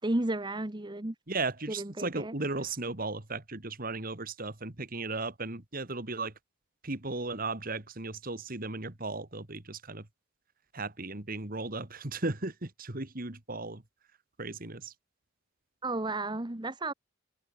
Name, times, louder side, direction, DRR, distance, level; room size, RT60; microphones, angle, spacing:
voice 1, 0.0-1.1 1.8-2.3 15.8-16.9, right 2 dB, 20° right, 1.0 m, -33 dB
voice 2, 1.3-6.3 6.8-10.1 10.7-13.8 14.4-14.9, right 3 dB, 45° right, 2.1 m, -36 dB
head